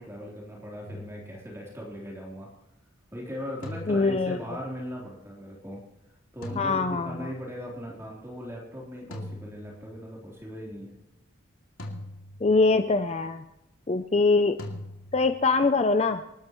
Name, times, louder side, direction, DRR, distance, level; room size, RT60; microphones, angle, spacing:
voice 1, 0.0-2.5 3.1-5.8 6.3-11.0, equal, 15° right, -3 dB, 3.6 m, -39 dB
sound 1, 0.9-1.9 3.6-4.8 6.4-7.6 9.1-10.3 11.8-12.9 14.6-15.5, left 1 dB, 85° left, 2.6 m, -42 dB
voice 2, 3.9-4.4 6.6-7.3 12.4-13.5 13.9-14.6 15.1-16.2, left 3 dB, 30° left, 9 dB, 0.5 m, -23 dB
26.5 x 13.0 x 3.1 m, 0.90 s
head